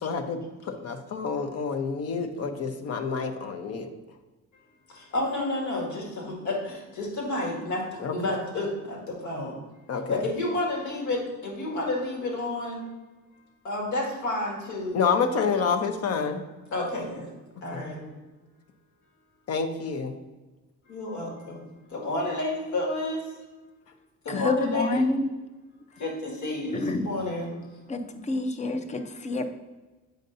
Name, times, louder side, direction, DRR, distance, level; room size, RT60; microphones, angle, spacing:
voice 1, 0.0-3.9 8.0-8.1 9.9-10.2 14.9-16.4 17.7-17.8 19.5-20.1, left 5 dB, 55° left, 6 dB, 0.7 m, -28 dB
voice 2, 5.1-6.6 7.0-7.8 8.1-9.0 9.2-9.5 10.1-12.8 13.7-15.0 16.7-17.3 17.6-18.1 20.9-21.6 21.9-23.2 24.3-25.0 26.0-27.5, left 2 dB, 75° left, -2 dB, 2.0 m, -30 dB
voice 3, 24.3-25.4 26.8-27.1 27.9-29.4, left 2 dB, 25° left, 8 dB, 0.5 m, -27 dB
7.7 x 5.2 x 2.6 m, 1.2 s
cardioid pair, 130°, 30 cm